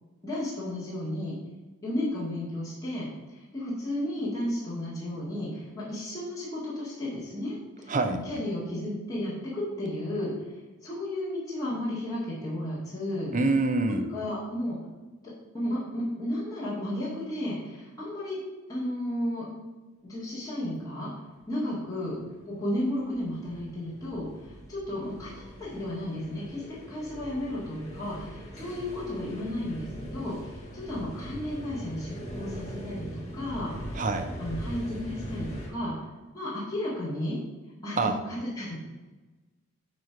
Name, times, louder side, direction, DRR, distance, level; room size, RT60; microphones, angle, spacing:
voice 1, 0.2-1.4 1.8-10.3 10.8-13.3 13.9-14.8 15.5-18.4 18.7-19.4 20.0-21.1 21.5-22.2 22.4-24.3 24.7-34.1 34.4-36.0 36.3-37.4 37.8-38.7, left 1 dB, 15° left, -9 dB, 2.0 m, -33 dB
voice 2, 7.9-8.2 13.3-14.0 33.9-34.3 38.0-38.1, right 3 dB, 35° right, 7 dB, 0.6 m, -25 dB
sound 1, 22.1-35.7, equal, 30° left, 1.6 m, -41 dB
9.2 x 3.1 x 5.7 m, 1.2 s
head